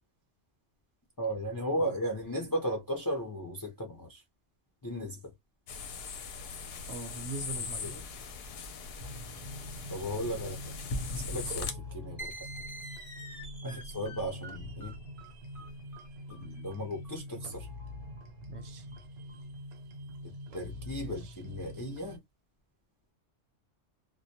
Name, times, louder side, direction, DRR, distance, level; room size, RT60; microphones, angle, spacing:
voice 1, 1.2-4.2 4.8-5.3 7.8-8.0 9.9-10.7 11.1-12.5 13.6-14.9 16.3-17.7 20.2-22.2, equal, 35° left, 0.3 m, -36 dB
sound 1, 5.7-11.7, left 4 dB, 60° left, 0.7 m, -39 dB
voice 2, 6.9-7.9 13.6-13.8 18.5-19.0 21.0-21.3, right 3 dB, 70° right, 0.8 m, -42 dB
sound 2, 9.0-22.2, equal, 90° right, 1.0 m, -45 dB
sound 3, 12.2-19.4, right 1 dB, 15° left, 0.7 m, -47 dB
2.2 x 2.1 x 2.6 m
omnidirectional pair, 1.3 m